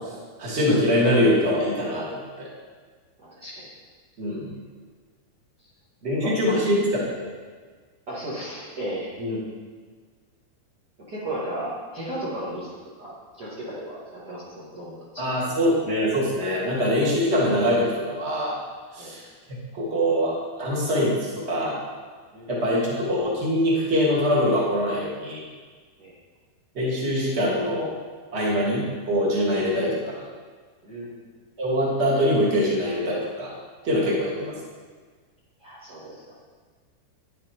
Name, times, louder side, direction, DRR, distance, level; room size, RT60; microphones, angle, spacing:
voice 1, 0.4-2.5 4.2-4.5 6.0-6.8 7.1-7.2 9.2-9.4 15.2-18.6 18.9-19.2 19.5-21.8 22.5-25.4 26.7-27.9 28.3-30.2 31.6-33.5 33.8-34.5, equal, 25° right, -5 dB, 1.6 m, -23 dB
voice 2, 3.2-3.7 6.2-6.6 8.1-9.1 11.1-12.7 13.0-15.4 19.0-19.1 22.3-22.5 26.0-26.1 30.8-31.2 35.6-36.3, right 1 dB, 40° right, -8 dB, 1.4 m, -35 dB
10.5 x 8.7 x 4.5 m, 1.5 s
omnidirectional pair, 4.9 m